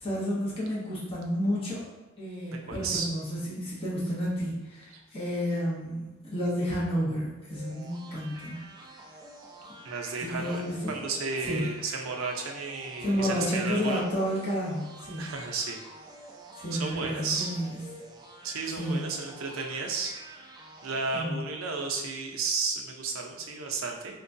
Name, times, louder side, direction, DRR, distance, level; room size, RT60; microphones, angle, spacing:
voice 1, 0.0-1.8 2.2-8.6 10.2-11.0 11.5-11.7 13.0-15.3 16.6-17.8 18.8-19.1 21.1-21.4, equal, 25° left, -7 dB, 0.8 m, -31 dB
voice 2, 2.6-3.1 9.8-14.1 15.2-15.8 16.7-17.5 18.4-20.1 20.8-24.2, right 4 dB, 75° right, 1 dB, 0.5 m, -33 dB
sound 1, 7.5-21.2, right 2 dB, 20° right, 0.4 m, -48 dB
4.4 x 2.3 x 2.6 m, 1.2 s
head